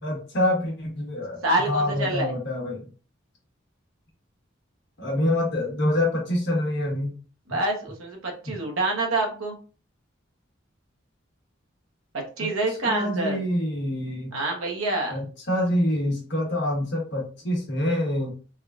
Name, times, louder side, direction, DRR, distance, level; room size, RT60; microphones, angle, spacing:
voice 1, 0.0-2.9 5.0-7.1 12.4-12.5 12.8-14.4 15.1-18.3, left 1 dB, 55° left, -2 dB, 1.1 m, -26 dB
voice 2, 1.4-2.3 7.5-9.5 12.4-13.4 14.3-15.1, right 2 dB, 85° right, 1 dB, 1.0 m, -26 dB
3.6 x 2.3 x 2.4 m, 0.38 s
head